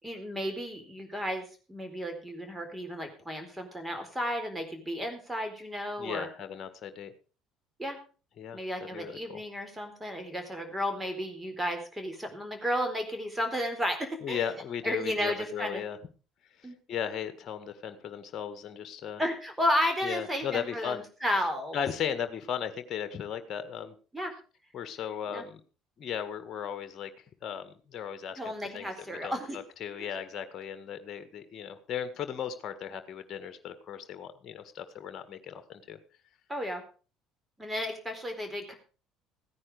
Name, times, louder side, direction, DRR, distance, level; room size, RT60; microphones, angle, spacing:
voice 1, 0.0-6.3 7.8-8.0 8.5-14.4 14.8-15.8 16.6-16.8 19.2-21.8 24.1-24.3 25.3-25.4 28.4-29.6 30.0-30.1 36.5-36.8 37.6-38.8, equal, 10° right, 6 dB, 4.2 m, -33 dB
voice 2, 6.0-7.1 8.4-8.6 8.9-9.4 14.2-16.0 16.9-19.2 20.0-21.0 21.7-23.9 24.7-25.6 26.0-27.1 27.4-28.4 28.7-36.0, left 8 dB, 45° left, 10 dB, 1.7 m, -36 dB
16.0 x 9.8 x 5.0 m, 0.36 s
figure-of-eight pair, 55°, 0 cm